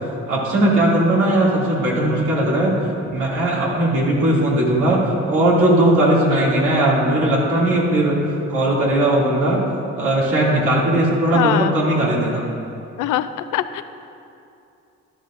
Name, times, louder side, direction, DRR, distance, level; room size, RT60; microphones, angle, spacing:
voice 1, 0.3-2.7 3.1-9.6 10.0-12.5, right 1 dB, 85° right, -5 dB, 2.6 m, -18 dB
voice 2, 11.3-11.7 13.0-13.8, left 12 dB, 80° left, 12 dB, 0.5 m, -22 dB
12.0 x 11.5 x 2.6 m, 2.6 s
cardioid pair, 90°, 30 cm